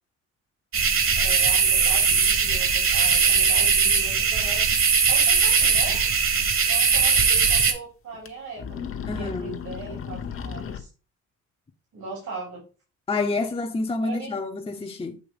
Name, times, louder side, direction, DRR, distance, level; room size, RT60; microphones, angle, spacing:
sound 1, 0.7-7.7, right 5 dB, 45° right, 1.4 m, -20 dB
voice 1, 1.1-4.7 5.1-6.0 6.6-8.8 9.2-10.9 11.9-12.6 14.0-14.3, right 3 dB, 75° right, 3.2 m, -38 dB
sound 2, 4.7-4.8 5.1-5.2 6.7-6.8 7.1-7.2 8.1-8.3 8.6-10.8, left 7 dB, 45° left, 0.9 m, -35 dB
voice 2, 9.1-9.6 13.1-15.2, left 3 dB, 20° left, 0.7 m, -28 dB
7.8 x 2.9 x 4.9 m
cardioid pair, 90°, 30 cm